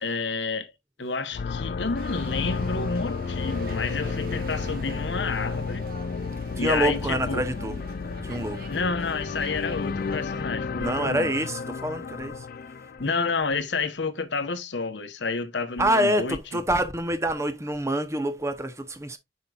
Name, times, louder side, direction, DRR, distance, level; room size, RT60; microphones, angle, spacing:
voice 1, 0.0-0.7 1.0-5.9 6.6-7.4 8.7-11.3 13.0-16.4, left 4 dB, 75° left, 1.0 m, -30 dB
sound 1, 1.3-13.3, left 5 dB, 55° left, 0.4 m, -32 dB
sound 2, 1.9-10.4, right 2 dB, 55° right, 1.3 m, -43 dB
voice 2, 6.6-7.8 8.2-8.7 10.8-12.5 15.8-19.2, right 1 dB, 15° right, 0.8 m, -26 dB
8.0 x 5.6 x 2.4 m
head